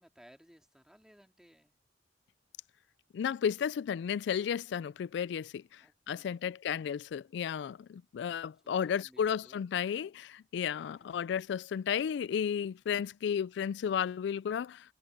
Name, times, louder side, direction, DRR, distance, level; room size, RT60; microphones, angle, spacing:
voice 1, 0.0-1.7 5.8-6.9 8.6-9.6 11.0-11.5 12.1-12.2, equal, 5° right, 2.3 m, -61 dB
voice 2, 3.1-5.8 6.1-14.9, left 8 dB, 70° left, 0.3 m, -33 dB
head